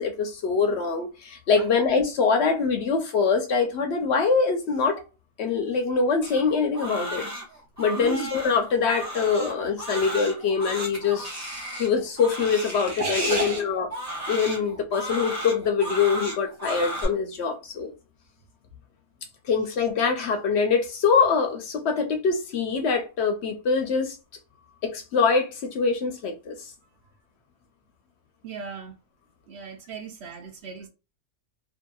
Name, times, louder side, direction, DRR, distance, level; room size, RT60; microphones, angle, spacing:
voice 1, 0.0-5.0 5.4-7.3 7.8-11.3 11.8-13.9 14.3-17.9 19.4-24.2 24.8-26.7, left 5 dB, 65° left, 0.8 m, -24 dB
Crying sobbing, 6.2-17.0, equal, 15° right, 0.8 m, -34 dB
voice 2, 8.0-8.3 13.0-13.7 28.4-28.9 29.5-30.9, right 4 dB, 65° right, 0.8 m, -34 dB
2.7 x 2.5 x 2.2 m
omnidirectional pair, 1.3 m